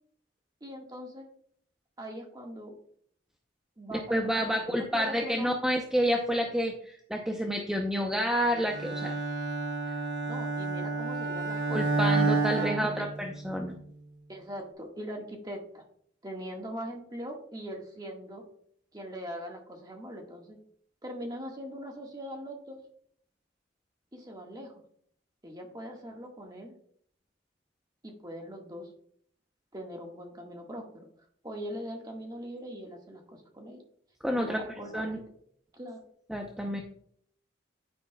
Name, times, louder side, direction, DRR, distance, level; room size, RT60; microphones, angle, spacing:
voice 1, 0.6-1.3 2.0-2.8 3.8-5.5 10.2-11.8 12.5-13.0 14.3-15.8 16.2-18.4 18.9-20.6 21.0-22.8 24.1-24.7 25.4-26.7 28.0-28.9 29.7-31.0 31.4-33.8 34.3-35.1 35.7-36.0, equal, 20° right, 1 dB, 1.6 m, -41 dB
voice 2, 4.1-9.1 11.7-13.8 34.2-34.6 34.9-35.2 36.3-36.8, equal, 5° right, 2 dB, 0.6 m, -29 dB
Bowed string instrument, 8.7-13.6, right 3 dB, 75° right, 2.3 m, -30 dB
9.7 x 9.5 x 2.3 m, 0.64 s
head